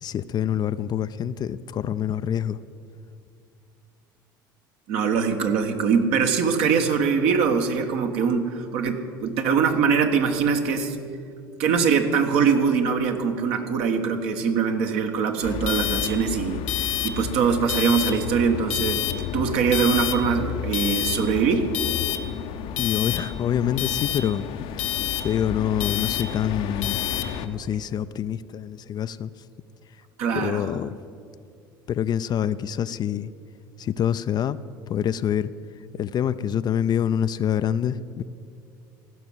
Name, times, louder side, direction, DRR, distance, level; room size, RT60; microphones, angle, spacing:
voice 1, 0.0-2.6 22.8-24.5 25.2-27.0 27.4-29.3 30.3-31.0 31.9-33.3 33.8-34.6 34.9-35.5 36.0-38.2, left 9 dB, 40° left, 14 dB, 0.5 m, -26 dB
voice 2, 4.9-11.0 11.6-21.7 30.2-30.6, right 6 dB, 60° right, 5 dB, 1.4 m, -23 dB
sound 1, 15.4-27.5, left 10 dB, 60° left, 0.8 m, -29 dB
15.5 x 6.1 x 9.4 m, 2.4 s
hypercardioid pair, 70°, 11 cm